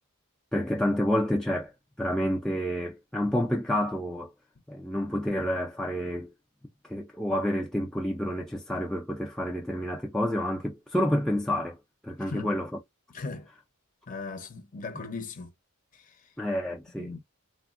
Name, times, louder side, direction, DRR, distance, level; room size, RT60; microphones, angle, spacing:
voice 1, 0.5-1.7 2.0-4.3 4.7-6.3 6.8-11.8 12.0-12.7 16.4-17.1, equal, 5° left, 0.3 m, -29 dB
voice 2, 13.1-13.5 14.1-15.5 15.9-16.3 17.0-17.2, left 3 dB, 35° left, 0.6 m, -38 dB
3.4 x 2.1 x 2.4 m
head